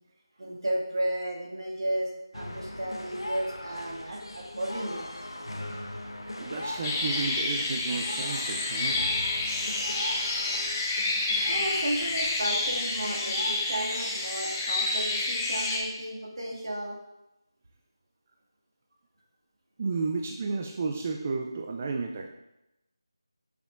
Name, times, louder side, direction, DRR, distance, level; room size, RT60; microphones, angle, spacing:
voice 1, 0.4-5.1 11.2-17.0, right 1 dB, 65° right, -2 dB, 1.9 m, -33 dB
sound 1, 2.3-14.3, left 1 dB, 90° left, 1.0 m, -40 dB
voice 2, 5.7-9.1 19.8-22.3, right 4 dB, 25° right, 2 dB, 0.3 m, -33 dB
sound 2, 6.8-15.8, left 2 dB, 15° left, 0.6 m, -29 dB
8.6 x 5.9 x 2.4 m, 0.91 s
figure-of-eight pair, 170°, 3 cm